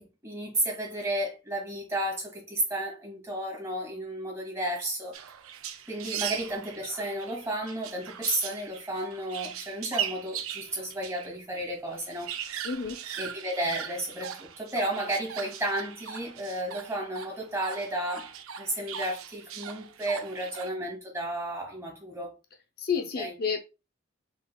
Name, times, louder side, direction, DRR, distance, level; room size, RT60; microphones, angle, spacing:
voice 1, 0.0-5.1 5.9-12.3 13.2-18.3 18.6-22.3 23.0-23.3, right 1 dB, 15° right, 1.7 m, -33 dB
sound 1, 5.1-11.3 11.6-11.7 11.9-20.7, right 8 dB, 85° right, 0.5 m, -39 dB
voice 2, 12.6-13.0 22.8-23.6, left 6 dB, 45° left, 0.5 m, -30 dB
4.7 x 3.7 x 2.3 m
head